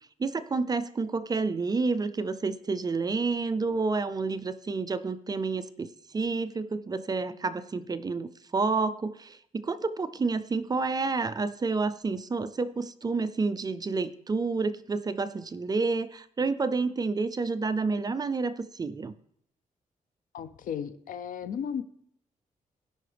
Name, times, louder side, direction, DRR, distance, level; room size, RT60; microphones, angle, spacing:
voice 1, 0.2-19.1, right 4 dB, 30° right, 12 dB, 0.4 m, -29 dB
voice 2, 20.3-21.8, left 8 dB, 80° left, 12 dB, 0.6 m, -35 dB
16.5 x 5.6 x 3.4 m, 0.68 s
cardioid pair, 120°, 14 cm